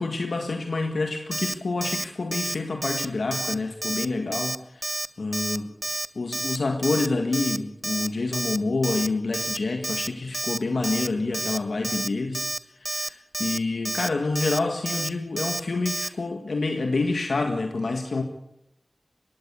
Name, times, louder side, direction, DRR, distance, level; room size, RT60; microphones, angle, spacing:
voice 1, 0.0-18.2, left 3 dB, 85° left, 4 dB, 1.8 m, -28 dB
Alarm, 1.3-1.5 1.8-2.0 2.3-2.5 2.8-3.1 3.3-3.5 3.8-4.0 4.3-4.6 4.8-5.1 5.3-5.6 5.8-6.1 6.3-6.6 6.8-7.1 7.3-7.6 7.8-8.1 8.3-8.6 8.8-9.1 9.3-9.6 9.8-10.1 10.3-10.6 10.8-11.1 11.3-11.6 11.8-12.1 12.3-12.6 12.8-13.1 13.3-13.6 13.8-14.1 14.3-14.6 14.9-15.1 15.4-15.6 15.8-16.1, right 2 dB, 35° right, 0.9 m, -29 dB
21.5 x 16.5 x 8.4 m, 0.84 s
wide cardioid pair, 50°, 0 cm